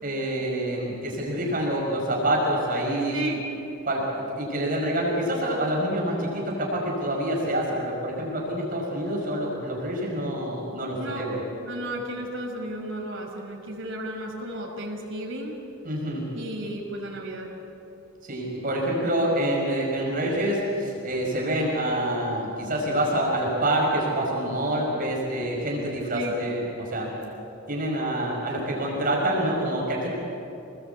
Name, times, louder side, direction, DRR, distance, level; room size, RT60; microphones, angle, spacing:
voice 1, 0.0-3.3 3.9-11.4 15.8-16.3 18.2-27.2 27.7-30.1, right 1 dB, 45° right, -2 dB, 5.5 m, -27 dB
voice 2, 3.1-3.4 11.0-11.3 11.7-15.6 16.3-17.5 26.1-26.3, right 1 dB, 70° right, 0 dB, 5.3 m, -33 dB
27.0 x 20.0 x 8.3 m, 2.8 s
head